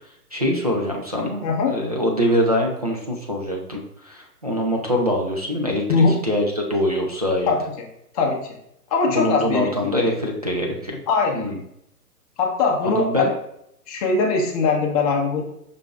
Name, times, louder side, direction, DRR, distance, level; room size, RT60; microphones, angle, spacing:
voice 1, 0.3-7.5 9.1-11.0 11.3-11.6 12.8-13.3, equal, 30° right, -2 dB, 0.3 m, -24 dB
voice 2, 1.4-1.8 5.9-6.2 7.5-7.6 8.1-8.4 8.9-9.7 11.1-11.4 12.4-13.3 13.9-15.4, left 4 dB, 25° left, 0 dB, 0.8 m, -20 dB
5.2 x 4.3 x 2.3 m, 0.76 s
hypercardioid pair, 135°, 47 cm